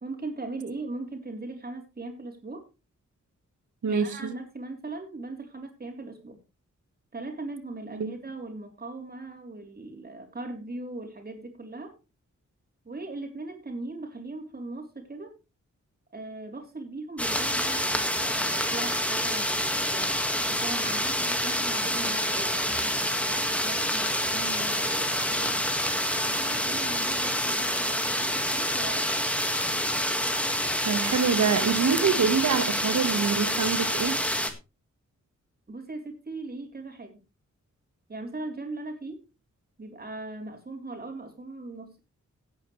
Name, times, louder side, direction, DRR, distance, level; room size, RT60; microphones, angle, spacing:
voice 1, 0.0-2.7 3.8-6.4 7.1-12.0 12.9-15.3 16.1-20.1 20.5-25.6 26.2-29.3 35.7-37.1 38.1-39.2 39.8-42.0, right 2 dB, 30° right, 3.5 m, -39 dB
voice 2, 3.8-4.3 7.9-8.1 30.8-34.2, right 6 dB, 75° right, 1.5 m, -25 dB
sound 1, 17.2-34.5, equal, 5° left, 1.8 m, -27 dB
17.0 x 9.1 x 3.2 m
wide cardioid pair, 165°, 30 cm